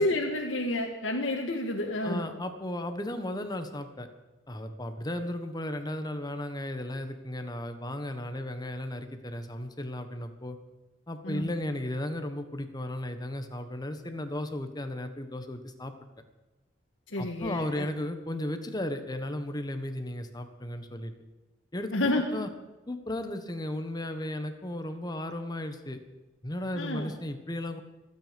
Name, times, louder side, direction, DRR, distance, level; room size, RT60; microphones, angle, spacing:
voice 1, 0.0-2.3 11.2-11.5 17.1-17.9 21.9-22.2 26.8-27.1, left 1 dB, 85° left, 0 dB, 1.8 m, -29 dB
voice 2, 2.0-4.1 4.5-10.6 11.1-15.9 17.2-21.1 21.7-21.9 22.3-22.5 22.9-26.0 26.4-27.8, left 1 dB, 20° left, 7 dB, 1.4 m, -35 dB
26.5 x 9.6 x 5.3 m, 1.1 s
head